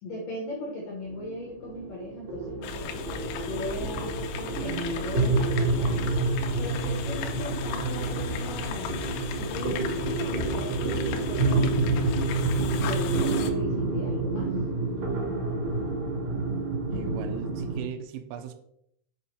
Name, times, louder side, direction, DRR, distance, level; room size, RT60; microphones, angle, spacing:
voice 1, 0.0-3.1 3.4-6.2 6.6-9.0 9.4-12.1 12.8-14.5, left 1 dB, 70° left, -3 dB, 2.1 m, -37 dB
sound 1, 1.0-17.8, right 2 dB, 45° right, 2.4 m, -28 dB
sound 2, 2.6-13.5, left 6 dB, 90° left, 3.3 m, -37 dB
voice 2, 16.9-18.5, right 9 dB, 85° right, 8 dB, 3.2 m, -38 dB
7.5 x 5.5 x 3.1 m, 0.72 s
omnidirectional pair, 5.7 m